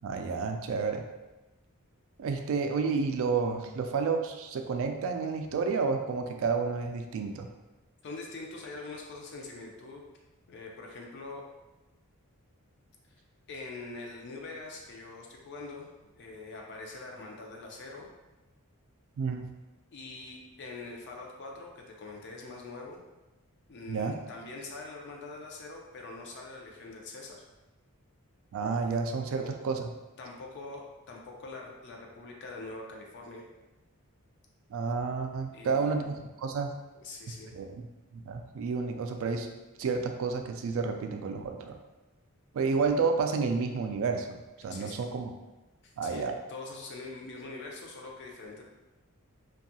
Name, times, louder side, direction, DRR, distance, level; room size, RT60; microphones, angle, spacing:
voice 1, 0.0-1.0 2.2-7.5 19.2-19.4 23.9-24.2 28.5-29.9 34.7-36.7 37.5-37.9 38.1-39.5 39.8-41.8 42.5-45.3 46.0-46.3, right 5 dB, 65° right, 5 dB, 0.3 m, -30 dB
voice 2, 8.0-10.0 10.5-11.4 13.5-18.1 19.9-23.0 23.7-27.4 29.4-29.5 30.2-33.5 35.5-36.0 36.9-37.5 44.7-45.1 45.8-48.6, left 3 dB, 55° left, 0 dB, 0.5 m, -44 dB
2.6 x 2.3 x 2.7 m, 1.1 s
head